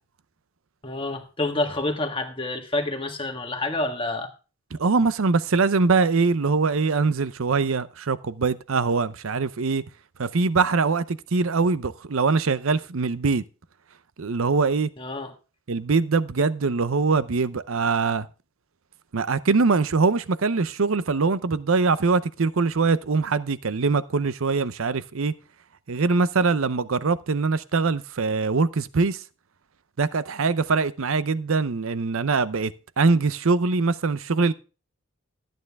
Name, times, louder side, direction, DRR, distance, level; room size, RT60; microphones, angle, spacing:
voice 1, 0.8-4.3 15.0-15.3, left 2 dB, 25° left, 1.6 m, -28 dB
voice 2, 4.7-9.8 10.2-13.4 14.2-14.9 15.7-18.3 19.1-25.3 25.9-29.2 30.0-32.7 33.0-34.5, right 4 dB, 70° right, 0.6 m, -23 dB
13.5 x 9.1 x 3.5 m
head